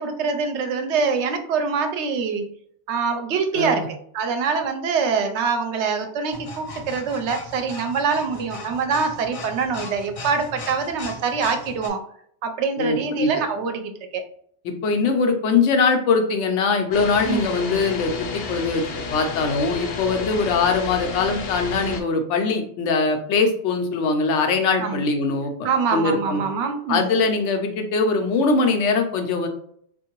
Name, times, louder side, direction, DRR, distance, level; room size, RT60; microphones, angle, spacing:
voice 1, 0.0-2.4 2.9-12.0 12.4-14.2 17.3-17.5 24.8-25.0 25.6-27.0, right 5 dB, 75° right, 6 dB, 0.8 m, -24 dB
voice 2, 3.5-3.9 12.8-13.4 14.6-18.8 19.1-26.4 26.9-29.5, left 4 dB, 90° left, 5 dB, 1.0 m, -22 dB
sound 1, 6.3-11.9, left 3 dB, 45° left, 0.5 m, -38 dB
sound 2, 16.9-22.0, left 4 dB, 65° left, 0.8 m, -32 dB
3.6 x 2.5 x 2.9 m, 0.65 s
omnidirectional pair, 1.2 m